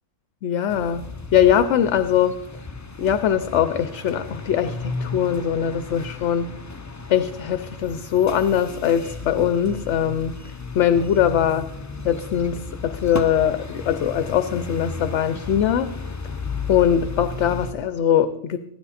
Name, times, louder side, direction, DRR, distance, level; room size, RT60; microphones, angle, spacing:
voice 1, 0.4-1.1 1.3-2.4 3.0-6.5 7.1-10.4 10.7-11.7 12.0-15.9 16.7-18.6, left 9 dB, 70° left, 11 dB, 0.9 m, -21 dB
sound 1, 0.7-17.7, left 3 dB, 25° left, 0.4 m, -34 dB
16.0 x 12.5 x 4.2 m, 0.81 s
omnidirectional pair, 1.3 m